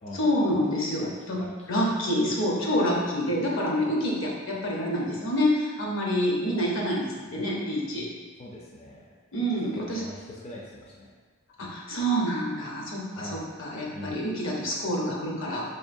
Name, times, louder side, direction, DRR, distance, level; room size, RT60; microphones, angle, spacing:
voice 1, 0.1-1.4 1.7-8.1 9.3-10.0 11.6-15.6, equal, 65° left, -3 dB, 0.8 m, -27 dB
voice 2, 1.4-1.8 8.4-9.1 9.6-11.1 11.6-11.8 13.1-13.5 13.9-14.3, left 1 dB, 30° left, -4 dB, 0.4 m, -42 dB
3.6 x 3.6 x 2.6 m, 1.4 s
head